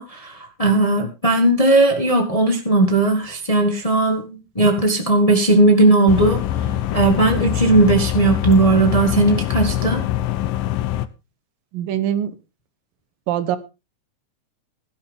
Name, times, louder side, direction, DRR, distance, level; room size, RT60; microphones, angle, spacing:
voice 1, 0.0-10.0, right 2 dB, 35° left, 4 dB, 0.5 m, -17 dB
sound 1, 6.1-11.1, left 12 dB, 80° left, 2.4 m, -23 dB
voice 2, 11.7-12.3 13.3-13.6, right 10 dB, 90° right, 13 dB, 2.9 m, -22 dB
16.5 x 11.0 x 3.5 m, 0.28 s
omnidirectional pair, 3.9 m